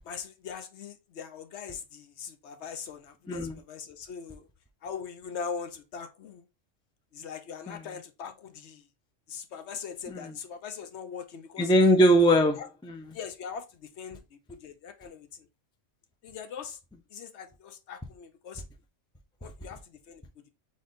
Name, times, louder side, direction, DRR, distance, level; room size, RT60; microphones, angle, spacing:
voice 1, 0.0-4.5 4.8-6.5 7.1-8.9 9.3-11.7 12.6-12.7 13.1-15.5 16.2-16.8 17.1-18.6 19.4-20.2, left 6 dB, 65° left, 0.9 m, -41 dB
voice 2, 11.6-13.0, equal, 5° left, 0.3 m, -22 dB
4.0 x 3.5 x 3.8 m
omnidirectional pair, 1.3 m